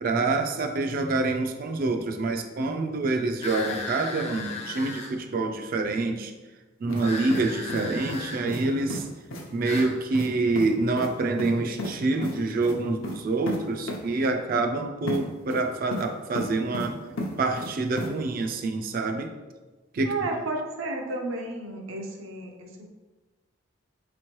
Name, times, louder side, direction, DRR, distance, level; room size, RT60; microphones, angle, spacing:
voice 1, 0.0-6.3 6.8-9.1 9.5-19.3 19.9-20.1, right 3 dB, 45° right, 5 dB, 0.3 m, -26 dB
sound 1, 3.4-5.1 7.0-8.4 9.6-9.9, left 3 dB, 30° left, 0.5 m, -36 dB
sound 2, 6.9-7.1 7.3-8.2 8.5-8.6 8.9-9.0 9.3-9.5 9.7-9.9 10.1-10.3 10.6-10.7 11.0-11.1 11.4-11.9 12.2-12.4 12.6-12.8 13.0-13.2 13.5-13.6 13.9-14.0 15.1-15.2 15.5-16.1 16.4-16.9 17.2-17.7 18.0-18.1, left 1 dB, 85° left, 0.6 m, -33 dB
voice 2, 20.0-22.9, right 2 dB, 80° right, 2 dB, 0.6 m, -32 dB
4.2 x 3.0 x 3.0 m, 1.2 s
head